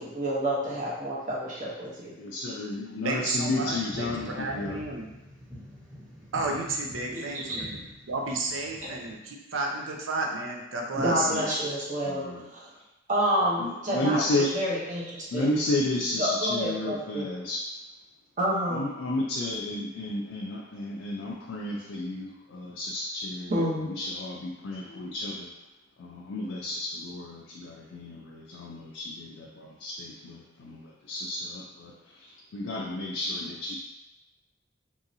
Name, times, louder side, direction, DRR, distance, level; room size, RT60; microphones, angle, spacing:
voice 1, 0.0-2.1 7.1-7.6 8.8-8.9 10.9-12.3 12.5-12.6 13.1-15.5 16.2-17.3 18.4-18.9 23.5-23.9, equal, 40° right, -5 dB, 0.8 m, -29 dB
voice 2, 2.2-4.8 11.1-11.6 12.1-12.5 13.6-14.6 15.3-17.6 18.7-25.5 26.0-31.9 32.2-33.8, left 1 dB, 65° left, -3 dB, 0.4 m, -32 dB
voice 3, 3.0-5.1 6.3-7.8 8.1-11.3, right 2 dB, 85° right, 2 dB, 0.5 m, -32 dB
sound 1, 3.3-9.2, equal, 5° left, 0.9 m, -45 dB
3.0 x 2.7 x 2.6 m, 1.0 s
head